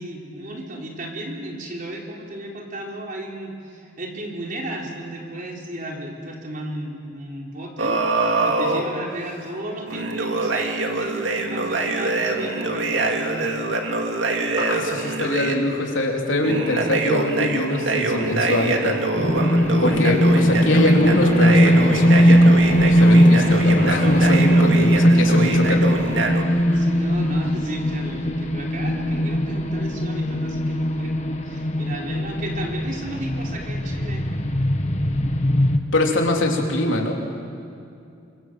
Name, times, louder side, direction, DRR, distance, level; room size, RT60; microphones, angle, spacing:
voice 1, 0.0-13.7 24.7-24.8 26.6-34.3, right 1 dB, 45° right, -1 dB, 4.5 m, -34 dB
sound 1, 7.8-8.9 9.9-15.6 16.4-26.4, right 3 dB, 65° right, 2.5 m, -24 dB
sound 2, 12.1-21.6 22.0-22.1 22.6-22.7, equal, 50° left, 5.9 m, -42 dB
voice 2, 14.6-19.0 19.8-25.9 26.5-26.9 35.9-37.1, left 1 dB, 85° left, 1 dB, 3.8 m, -23 dB
sound 3, 19.1-35.8, equal, 35° left, 1.5 m, -19 dB
28.0 x 25.5 x 7.9 m, 2.5 s
head